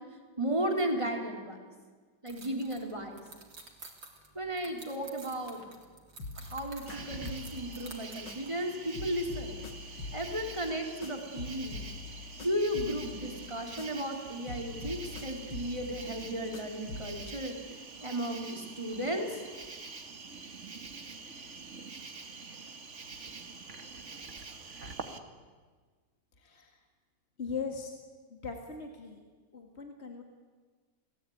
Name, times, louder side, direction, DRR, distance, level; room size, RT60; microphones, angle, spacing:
voice 1, 0.4-1.6 2.2-3.2 4.3-5.6 6.4-9.6 10.1-11.9 12.4-17.5 18.0-19.4, right 1 dB, 15° right, 2 dB, 3.5 m, -34 dB
sound 1, 2.3-8.7, right 3 dB, 90° right, 4.0 m, -52 dB
sound 2, 6.2-8.7 8.9-14.2 14.5-17.3, left 3 dB, 75° left, 2.8 m, -45 dB
Cricket, 6.9-25.2, right 4 dB, 40° right, 2.0 m, -46 dB
voice 2, 26.4-26.8 27.4-27.9 28.3-29.2 29.5-30.2, left 5 dB, 35° left, 3 dB, 2.2 m, -39 dB
29.0 x 19.0 x 9.3 m, 1.5 s
omnidirectional pair, 2.0 m